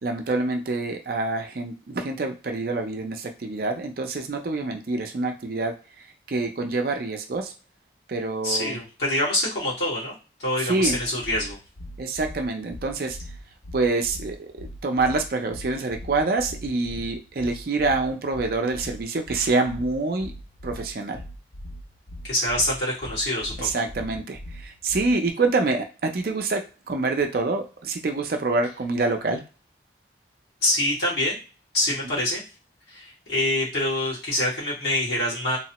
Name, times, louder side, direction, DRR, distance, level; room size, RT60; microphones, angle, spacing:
voice 1, 0.0-5.8 6.3-7.5 8.1-8.8 10.6-11.0 12.0-13.2 13.7-20.3 20.6-21.2 23.6-29.4, right 3 dB, 50° right, 4 dB, 0.4 m, -26 dB
voice 2, 8.4-11.6 22.2-23.7 30.6-31.4 31.7-32.4 32.9-35.6, left 1 dB, 65° left, -7 dB, 1.6 m, -25 dB
sound 1, 10.8-25.3, equal, 35° left, 0.4 m, -40 dB
3.0 x 2.1 x 2.8 m, 0.33 s
head